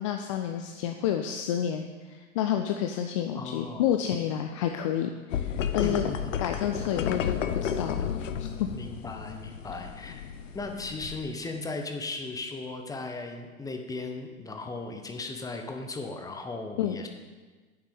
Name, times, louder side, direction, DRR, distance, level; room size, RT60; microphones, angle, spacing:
voice 1, 0.0-6.0 6.4-8.7 16.8-17.0, left 10 dB, 25° left, 5 dB, 0.3 m, -30 dB
voice 2, 3.3-3.8 5.8-6.2 8.7-10.2 10.5-17.1, left 3 dB, 10° left, 4 dB, 1.1 m, -37 dB
sound 1, 5.3-11.2, left 8 dB, 60° left, 0.8 m, -32 dB
9.3 x 7.2 x 6.9 m, 1.4 s
figure-of-eight pair, 95°, 42 cm